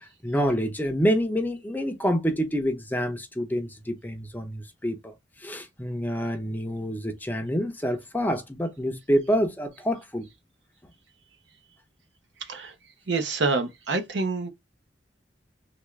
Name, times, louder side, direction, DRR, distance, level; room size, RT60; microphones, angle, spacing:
voice 1, 0.2-5.1 5.4-10.3, equal, 10° left, 0.6 m, -27 dB
voice 2, 12.4-12.7 13.1-14.5, right 3 dB, 70° right, 0.8 m, -27 dB
3.5 x 2.4 x 3.1 m
head